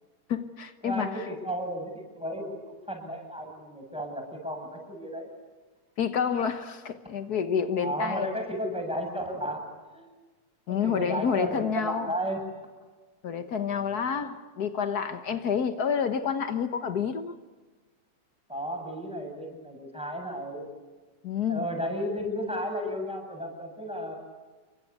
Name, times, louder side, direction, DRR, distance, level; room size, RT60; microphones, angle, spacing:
voice 1, 0.3-1.2 6.0-8.3 10.7-12.1 13.2-17.3 21.2-21.7, left 7 dB, 85° left, 0.8 m, -29 dB
voice 2, 0.8-5.3 7.8-10.1 10.7-12.4 13.7-13.9 18.5-20.6 21.5-24.2, equal, ahead, 7.8 m, -34 dB
29.0 x 24.0 x 8.5 m
omnidirectional pair, 3.5 m